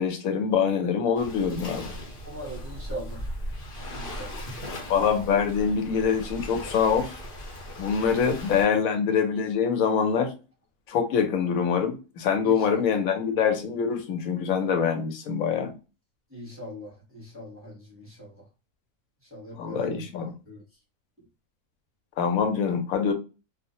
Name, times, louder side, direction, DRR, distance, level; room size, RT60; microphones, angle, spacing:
voice 1, 0.0-1.9 4.9-7.1 7.8-10.3 10.9-15.7 19.5-20.4 22.2-23.1, left 6 dB, 90° left, 1.0 m, -24 dB
Waves surf, 1.1-8.7, equal, 50° left, 0.8 m, -38 dB
voice 2, 2.2-3.2 3.9-4.4 8.2-8.4 12.4-12.7 16.3-18.4 19.3-20.0 20.5-20.6, right 1 dB, 10° right, 1.0 m, -40 dB
2.4 x 2.0 x 2.7 m
omnidirectional pair, 1.4 m